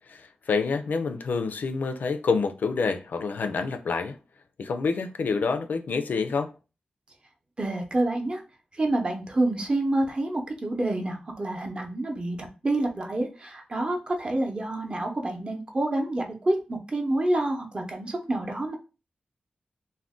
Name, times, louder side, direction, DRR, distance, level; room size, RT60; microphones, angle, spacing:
voice 1, 0.1-4.2 4.6-6.5, left 4 dB, 75° left, 0.3 m, -27 dB
voice 2, 7.6-8.4 8.7-18.8, right 1 dB, 35° right, 0.7 m, -28 dB
2.5 x 2.1 x 3.5 m
wide cardioid pair, 80°, 3 cm